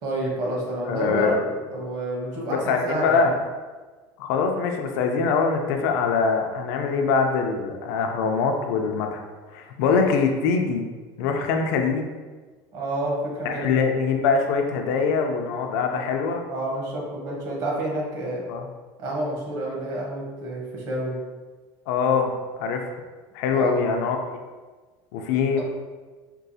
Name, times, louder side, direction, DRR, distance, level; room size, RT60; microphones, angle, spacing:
voice 1, 0.0-1.4 1.7-3.3 12.7-13.7 16.5-18.5 19.0-21.2 23.5-23.8, right 1 dB, 40° right, -3 dB, 0.9 m, -29 dB
voice 2, 0.9-1.4 2.7-3.4 4.2-9.2 9.5-10.9 11.2-12.1 13.4-16.4 18.5-18.6 21.9-22.3 22.6-22.9 23.3-24.4 25.1-25.6, left 5 dB, 75° left, 3 dB, 0.4 m, -23 dB
4.5 x 2.3 x 2.6 m, 1.3 s
cardioid pair, 180°, 9 cm